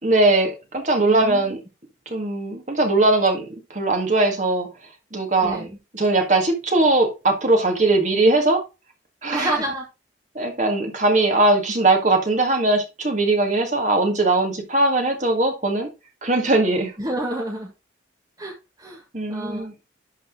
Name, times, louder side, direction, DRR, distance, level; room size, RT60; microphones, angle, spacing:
voice 1, 0.0-1.6 2.1-4.7 5.1-5.7 5.9-8.6 9.2-9.6 10.4-15.9 16.2-16.9 19.1-19.7, right 2 dB, 40° right, 4 dB, 1.9 m, -20 dB
voice 2, 1.1-1.6 5.4-5.7 9.3-9.8 17.0-17.7 18.4-18.5 18.8-19.0 19.3-19.7, right 1 dB, 20° right, -1 dB, 1.4 m, -28 dB
11.5 x 4.1 x 3.7 m, 0.27 s
head